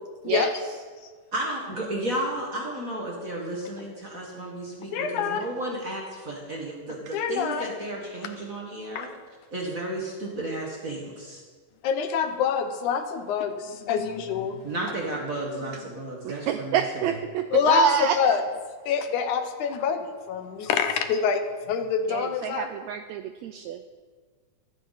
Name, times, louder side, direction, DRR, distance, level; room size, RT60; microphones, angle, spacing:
voice 1, 1.3-9.1 9.5-11.4 14.6-17.2, right 1 dB, 35° right, -1 dB, 1.4 m, -33 dB
voice 2, 4.9-5.5 7.1-7.7 9.0-9.1 11.8-14.7 17.5-18.4 18.9-21.4 21.7-22.7, left 7 dB, 75° left, 8 dB, 2.3 m, -26 dB
voice 3, 16.2-18.4 22.1-23.9, right 8 dB, 85° right, 9 dB, 1.6 m, -27 dB
14.5 x 13.5 x 4.1 m, 1.5 s
omnidirectional pair, 3.7 m